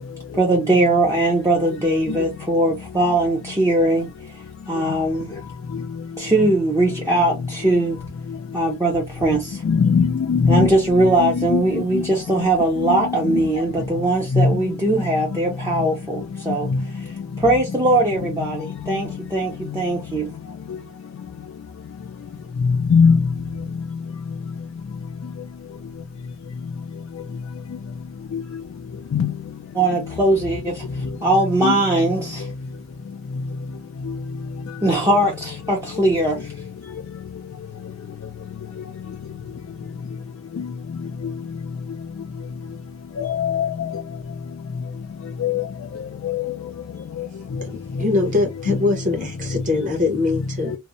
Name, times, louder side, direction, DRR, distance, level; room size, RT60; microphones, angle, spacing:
voice 1, 0.3-4.1 4.7-5.4 6.2-8.0 8.5-9.6 10.5-16.7 16.9-17.0 17.4-20.3 29.7-32.5 34.8-36.5, right 2 dB, 15° right, 0.6 m, -20 dB
voice 2, 9.7-10.7 11.2-11.6 12.9-13.0 14.3-14.5 22.9-23.2 29.1-29.3 31.6-31.7 43.2-43.7 45.4-45.5, left 5 dB, 65° left, 0.3 m, -17 dB
voice 3, 47.6-50.7, left 3 dB, 40° right, 0.9 m, -23 dB
2.6 x 2.0 x 2.6 m
head